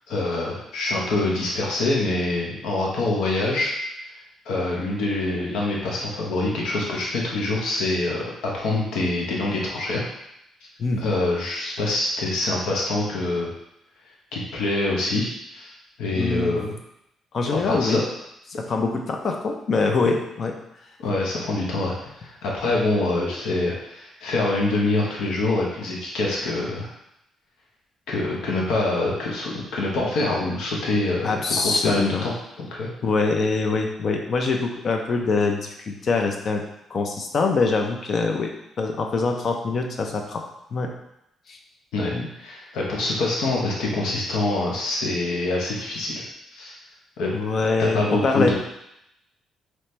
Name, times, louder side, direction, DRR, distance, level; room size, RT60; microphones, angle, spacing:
voice 1, 0.1-3.7 4.4-8.2 8.5-10.0 11.0-13.5 14.3-15.7 16.0-16.7 17.5-18.0 21.0-26.9 28.1-32.9 41.9-42.1 42.4-46.2 46.5-46.7 47.2-47.3 47.8-48.5, left 2 dB, 85° left, -3 dB, 1.1 m, -25 dB
voice 2, 16.1-16.6 17.3-18.0 18.6-20.5 31.2-32.2 33.0-36.6 36.9-38.5 38.8-40.4 40.7-40.9 41.5-41.6 42.1-42.3 47.3-48.5, left 4 dB, 50° left, 2 dB, 0.7 m, -24 dB
4.3 x 3.1 x 3.3 m, 0.80 s
cardioid pair, 90°, 0 cm